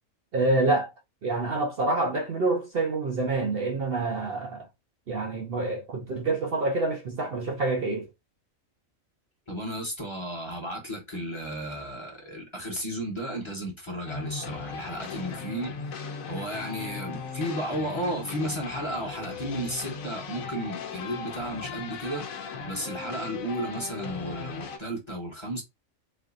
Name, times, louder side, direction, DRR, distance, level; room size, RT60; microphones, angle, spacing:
voice 1, 0.3-0.9 1.2-4.7 5.1-8.1, right 2 dB, 55° right, 0.8 m, -27 dB
voice 2, 9.5-22.3 22.7-25.6, right 1 dB, 25° left, 1.1 m, -34 dB
sound 1, 14.1-24.8, left 5 dB, 85° left, 1.2 m, -38 dB
4.2 x 2.5 x 2.5 m
omnidirectional pair, 1.4 m